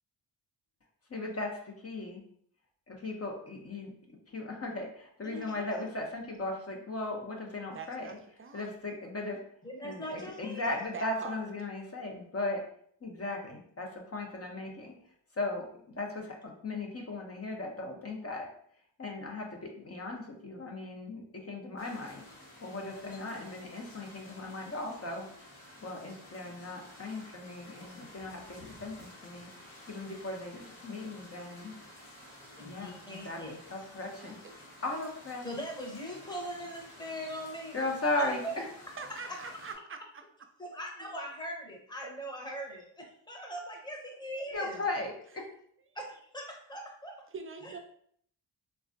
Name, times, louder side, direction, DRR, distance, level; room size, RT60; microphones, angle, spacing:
voice 1, 1.1-2.2 2.9-3.9 4.3-8.2 8.5-9.4 9.8-12.6 13.0-14.9 15.3-18.5 19.0-22.2 22.6-25.3 25.8-31.7 32.6-34.4 34.8-35.4 37.7-38.7 44.5-45.5, left 2 dB, 30° left, 1 dB, 0.7 m, -37 dB
voice 2, 5.2-5.7 9.6-10.8 32.6-33.6 35.4-37.7 38.4-38.5 39.2-39.6 40.6-44.8 45.9-47.1 47.6-47.7, equal, 10° left, -1 dB, 0.9 m, -41 dB
voice 3, 7.7-8.7 10.9-11.4 34.1-34.5 39.0-40.0 42.0-42.1 47.3-47.8, right 5 dB, 30° right, 6 dB, 0.4 m, -43 dB
sound 1, 21.8-39.7, left 1 dB, 80° left, 1.1 m, -52 dB
3.2 x 2.2 x 2.5 m, 0.64 s
cardioid pair, 55°, 47 cm